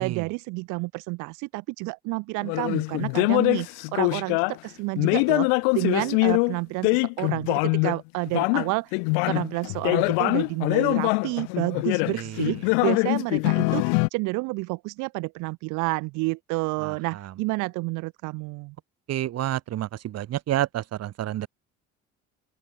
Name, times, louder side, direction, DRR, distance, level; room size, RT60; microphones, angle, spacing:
voice 1, 0.0-8.9 9.3-18.8, right 26 dB, 80° right, 1.1 m, -30 dB
sound 1, 2.4-4.6 5.0-8.0 8.3-14.1, left 40 dB or more, 85° left, 0.6 m, -23 dB
voice 2, 12.1-12.4 16.8-16.9 19.1-21.5, right 13 dB, 55° right, 1.4 m, -29 dB
open air
supercardioid pair, 75°, 30 cm